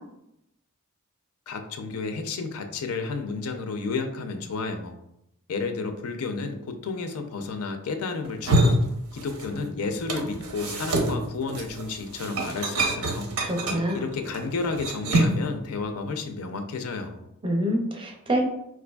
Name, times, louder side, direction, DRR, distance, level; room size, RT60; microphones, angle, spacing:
voice 1, 1.5-4.9 5.5-8.8 9.1-13.3 13.9-17.3, left 4 dB, 80° left, 6 dB, 0.4 m, -31 dB
sound 1, 8.2-9.7 9.9-15.5, right 1 dB, 85° right, 0.6 m, -26 dB
voice 2, 13.4-14.0 17.4-18.4, equal, 25° right, 1 dB, 0.4 m, -26 dB
4.4 x 2.5 x 2.2 m, 0.82 s
head